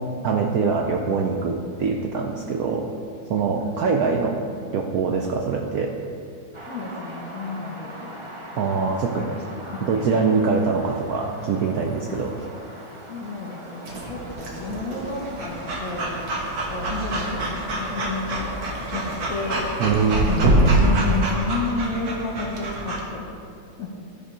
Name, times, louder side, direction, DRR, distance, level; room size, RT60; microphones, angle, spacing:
voice 1, 0.2-2.9 3.3-4.4 4.7-5.9 8.6-9.3 9.8-12.3 19.8-20.3, right 5 dB, 70° right, 2 dB, 0.9 m, -23 dB
sound 1, 6.5-21.3, right 1 dB, 30° right, 0.5 m, -41 dB
voice 2, 6.7-8.1 9.1-10.1 12.1-12.2 13.1-16.4 16.7-19.7 20.3-23.3 23.8-23.9, left 3 dB, 50° left, -2 dB, 1.6 m, -31 dB
Breathing / Dog, 13.9-23.0, right 1 dB, 90° right, 1.9 m, -25 dB
13.5 x 4.5 x 4.9 m, 2.5 s
omnidirectional pair, 2.0 m